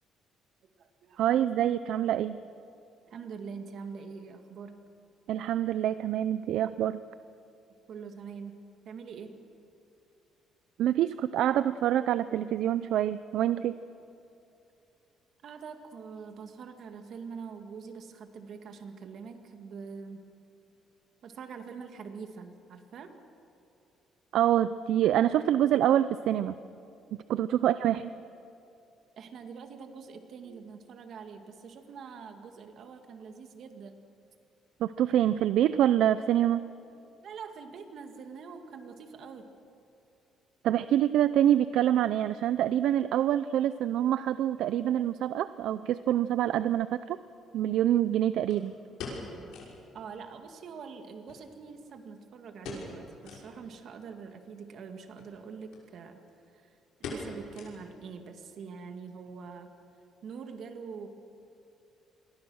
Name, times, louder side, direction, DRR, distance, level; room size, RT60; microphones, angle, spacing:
voice 1, 0.6-1.3 3.0-4.8 7.9-9.4 15.4-20.3 21.2-23.2 29.2-34.0 37.2-39.4 49.9-56.2 56.5-59.7 60.2-61.1, right 5 dB, 50° right, 6 dB, 2.0 m, -44 dB
voice 2, 1.2-2.4 5.3-7.0 10.8-13.8 24.3-26.5 27.3-28.1 34.8-36.6 40.6-47.2 47.5-48.7, right 11 dB, 70° right, 14 dB, 0.5 m, -26 dB
sound 1, 46.4-46.5 48.5-49.8 50.1-50.2 50.5-50.6 51.3-52.1 52.6-53.0 53.2-53.5 54.0-54.1 55.1-55.3 55.7-55.8 56.1-56.5 57.0-58.1 58.4-58.5 59.1-59.4 59.7-59.8, left 3 dB, 90° left, 6.1 m, -42 dB
27.0 x 22.5 x 6.4 m, 2.6 s
cardioid pair, 155°, 0 cm